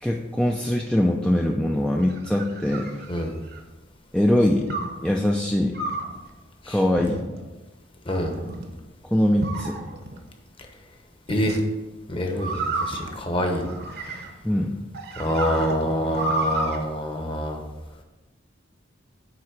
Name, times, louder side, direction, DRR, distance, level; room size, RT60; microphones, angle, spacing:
voice 1, 0.0-3.0 4.1-4.7 5.0-5.8 6.7-7.2 9.0-9.8 14.4-14.8, left 1 dB, 5° left, 0 dB, 0.4 m, -22 dB
sound 1, 2.0-3.7 4.7-5.0 5.7-6.2 7.0-7.5 8.1-8.7 9.4-10.2 11.3-11.6 12.4-14.5 14.9-16.8, right 2 dB, 55° right, 0.9 m, -31 dB
voice 2, 12.1-13.6 15.2-17.6, equal, 25° left, 3 dB, 0.9 m, -26 dB
9.2 x 3.7 x 4.9 m, 1.1 s
head